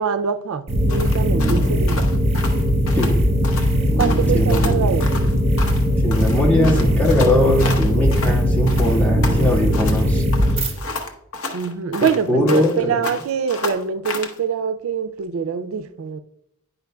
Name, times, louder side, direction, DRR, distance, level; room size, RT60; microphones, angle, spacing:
voice 1, 0.0-2.1 4.0-5.2 11.5-16.2, right 6 dB, 80° right, 0.4 m, -24 dB
sound 1, 0.7-10.7, equal, 30° right, 1.2 m, -19 dB
sound 2, 0.9-3.2 3.4-3.7 4.0-5.9 6.1-8.4 8.7-10.0 10.3-12.8 13.0-14.4, left 3 dB, 90° left, 1.0 m, -31 dB
voice 2, 4.3-4.7 6.0-10.2 12.3-12.9, left 1 dB, 10° left, 1.5 m, -20 dB
9.3 x 5.4 x 2.2 m
head